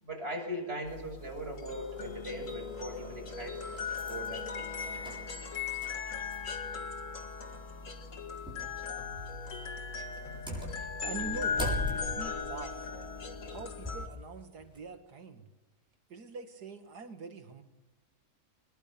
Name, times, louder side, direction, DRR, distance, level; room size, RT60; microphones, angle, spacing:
voice 1, 0.0-3.8 4.1-4.8, equal, 40° right, 0 dB, 6.5 m, -40 dB
sound 1, 0.9-14.1, left 5 dB, 55° left, 2.3 m, -38 dB
sound 2, 2.5-2.6 3.3-6.8 7.1-7.2 8.5-8.7 9.1-9.4 10.1-14.1 14.6-14.8, left 1 dB, 5° right, 7.5 m, -40 dB
voice 2, 10.8-12.9 13.5-15.5 16.1-17.6, right 4 dB, 80° right, 6 dB, 2.4 m, -44 dB
22.5 x 21.5 x 6.9 m, 1.0 s
omnidirectional pair, 1.7 m